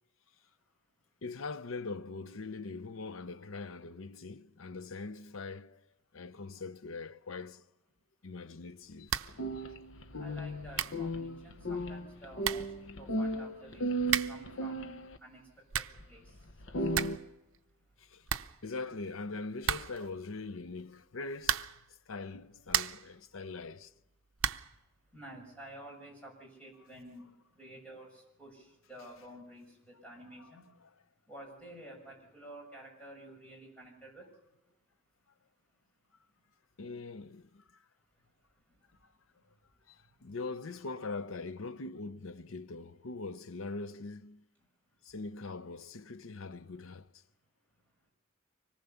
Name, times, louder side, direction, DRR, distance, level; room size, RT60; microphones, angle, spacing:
voice 1, 1.2-5.8 6.1-7.6 8.2-9.1 18.1-18.2 18.6-21.8 22.1-23.9 36.8-37.6 39.9-40.0 40.2-44.4 45.1-47.1, left 3 dB, 85° left, 0.7 m, -42 dB
sound 1, 9.1-9.4 9.7-9.8 10.4-10.5 10.7-11.1 12.0-12.1 12.4-12.8 14.0-14.5 15.4-16.1 16.4-16.5 16.7-17.3 17.5-17.6 17.9-18.0 18.3-19.1 19.6-20.1 21.4-21.9 22.4-23.1 24.4-24.8, right 9 dB, 75° right, 0.7 m, -34 dB
sound 2, 9.3-15.2 16.0-16.1 16.5-17.2, right 1 dB, 70° left, 1.1 m, -35 dB
voice 2, 10.1-17.2 17.5-18.6 24.4-30.7 31.3-34.4 38.1-39.7 39.9-40.3 44.6-45.0 47.7-48.1, right 1 dB, 5° left, 6.5 m, -52 dB
25.0 x 18.5 x 7.0 m
head